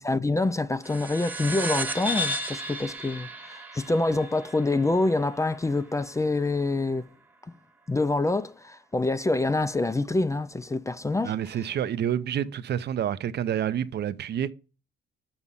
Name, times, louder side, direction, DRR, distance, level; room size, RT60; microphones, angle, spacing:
voice 1, 0.0-7.0 7.9-11.3, left 2 dB, 15° left, 0.4 m, -26 dB
sound 1, 0.8-5.8, equal, 10° right, 1.0 m, -34 dB
voice 2, 11.2-14.5, right 10 dB, 60° right, 0.6 m, -28 dB
6.9 x 4.8 x 5.6 m
cardioid pair, 90°, 20 cm